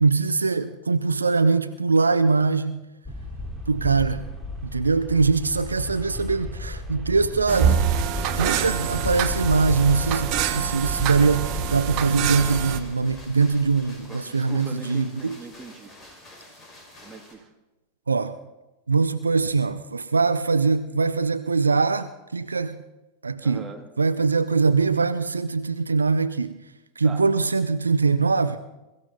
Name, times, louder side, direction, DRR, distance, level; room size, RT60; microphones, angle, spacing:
voice 1, 0.0-2.8 3.7-4.2 4.6-7.8 8.3-15.4 18.1-18.3 18.9-22.8 23.2-23.6 24.0-26.6 27.0-28.6, right 4 dB, 75° right, 0.6 m, -22 dB
sound 1, 3.1-12.4 12.8-14.0, left 2 dB, ahead, 3.5 m, -34 dB
sound 2, 7.5-12.8, right 8 dB, 40° right, 1.3 m, -25 dB
sound 3, 12.3-17.3, left 1 dB, 25° left, 5.3 m, -47 dB
voice 2, 14.0-16.2 17.0-17.5 23.4-23.9 27.0-27.3, right 4 dB, 15° right, 2.3 m, -41 dB
22.5 x 14.5 x 4.0 m
figure-of-eight pair, 90°, 0 cm